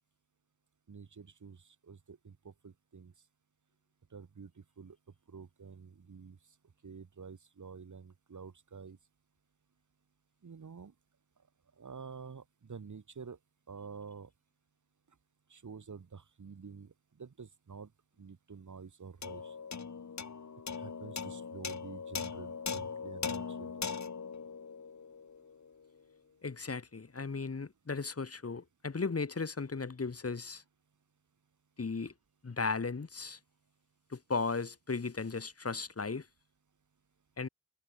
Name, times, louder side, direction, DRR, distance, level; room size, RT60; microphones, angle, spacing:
voice 1, 0.9-1.6 1.9-3.1 4.1-4.5 4.8-5.0 5.3-6.4 6.8-9.0 10.4-10.9 11.8-12.4 12.7-13.4 13.7-14.3 15.5-16.9 17.2-17.9 18.2-19.5 20.8-23.7, right 5 dB, 80° right, 2.4 m, -48 dB
sound 1, 19.2-25.8, left 5 dB, 70° left, 1.6 m, -40 dB
voice 2, 26.4-30.6 31.8-32.1 32.4-33.4 34.1-36.3 37.4-37.5, left 4 dB, 55° left, 2.0 m, -36 dB
wide cardioid pair, 70°, 29 cm